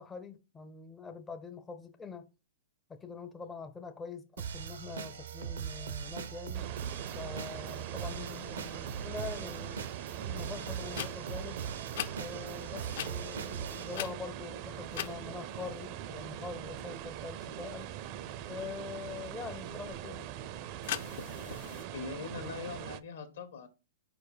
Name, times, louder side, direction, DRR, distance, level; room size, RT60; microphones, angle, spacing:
voice 1, 0.0-2.3 2.9-6.7 7.1-9.9 10.2-11.6 12.2-17.9 18.5-20.3, left 5 dB, 15° left, 0.4 m, -44 dB
sound 1, 4.4-14.0, right 7 dB, 85° right, 0.7 m, -40 dB
sound 2, 6.5-23.0, right 11 dB, 45° right, 0.5 m, -42 dB
sound 3, 10.9-11.1 11.9-12.1 12.9-13.1 13.9-14.4 14.9-15.1 20.8-21.8, left 10 dB, 60° left, 0.6 m, -38 dB
voice 2, 21.5-23.7, left 5 dB, 80° left, 1.6 m, -42 dB
4.9 x 4.5 x 4.9 m
hypercardioid pair, 135°, 0 cm